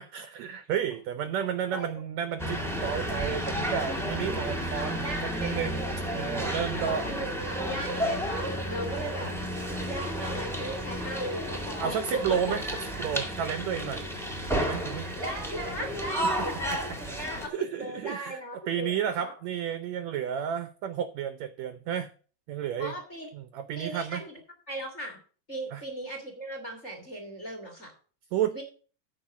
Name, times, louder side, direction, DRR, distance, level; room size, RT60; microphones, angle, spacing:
voice 1, 0.0-5.8 6.1-7.0 11.8-12.6 13.0-14.0 14.6-15.1 16.4-16.8 17.5-18.4 18.7-22.1 22.5-23.0 23.3-24.2 25.7-25.8 28.3-28.5, right 9 dB, 75° right, 11 dB, 1.6 m, -32 dB
sound 1, 2.4-17.5, equal, ahead, 0.5 m, -32 dB
voice 2, 4.8-5.6 6.9-9.3 9.7-12.6 15.2-19.3 22.8-23.3 23.8-24.4 24.7-25.2 25.5-27.9 28.5-28.6, right 1 dB, 25° left, 4 dB, 1.9 m, -37 dB
13.0 x 4.8 x 6.1 m, 0.41 s
omnidirectional pair, 3.8 m